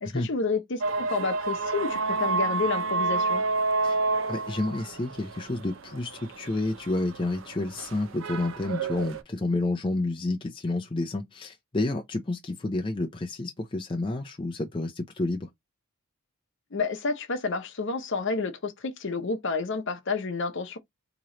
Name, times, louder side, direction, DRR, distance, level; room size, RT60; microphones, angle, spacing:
voice 1, 0.0-3.4 16.7-20.8, left 4 dB, 55° left, 0.7 m, -30 dB
sound 1, 0.8-9.2, right 3 dB, 60° right, 0.5 m, -29 dB
voice 2, 4.3-15.5, left 2 dB, 25° left, 0.5 m, -30 dB
3.1 x 3.0 x 3.7 m
head